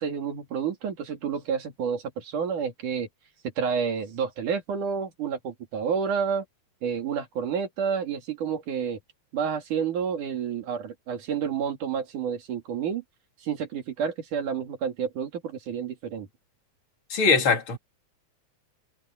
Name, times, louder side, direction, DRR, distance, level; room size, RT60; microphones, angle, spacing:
voice 1, 0.0-3.1 3.6-6.5 6.8-9.0 9.3-13.0 13.4-16.3, right 7 dB, 90° right, 4.2 m, -29 dB
voice 2, 17.1-17.8, left 4 dB, 40° left, 4.3 m, -21 dB
omnidirectional pair, 3.5 m